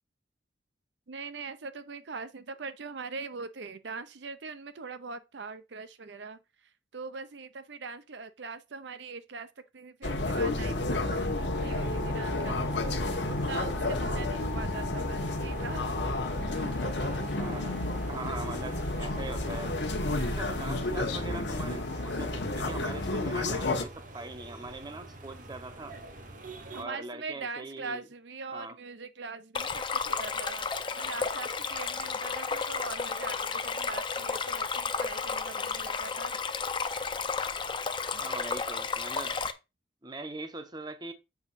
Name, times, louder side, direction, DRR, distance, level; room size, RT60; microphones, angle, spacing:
voice 1, 1.1-6.4 6.9-9.5 9.7-13.0 13.3-15.9 20.1-20.5 26.7-30.6 31.0-36.3, right 4 dB, 65° right, 0.6 m, -42 dB
sound 1, 10.0-23.8, left 2 dB, 65° left, 1.1 m, -31 dB
sound 2, 11.5-26.9, right 2 dB, 45° right, 1.0 m, -47 dB
voice 2, 17.3-19.8 20.3-26.0 26.7-28.1 28.5-28.8 38.1-39.4 40.0-41.1, right 2 dB, 20° right, 0.7 m, -41 dB
Stream, 29.5-39.5, left 5 dB, 25° left, 0.5 m, -32 dB
7.0 x 3.6 x 5.6 m
head